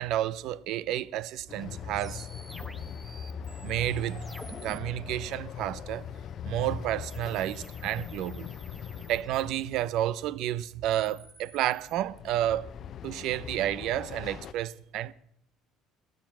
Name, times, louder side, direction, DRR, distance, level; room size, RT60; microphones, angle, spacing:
voice 1, 0.0-2.3 3.6-4.2 4.6-6.1 6.5-8.5 9.1-12.7 13.0-15.1, right 13 dB, 70° right, 0.6 m, -30 dB
Train, 1.5-10.0 11.8-14.5, left 8 dB, 55° left, 0.7 m, -41 dB
sound 1, 1.9-4.8 7.1-9.9 10.7-12.0, right 1 dB, 10° right, 1.6 m, -50 dB
17.0 x 13.5 x 6.1 m
supercardioid pair, 80°, 0 cm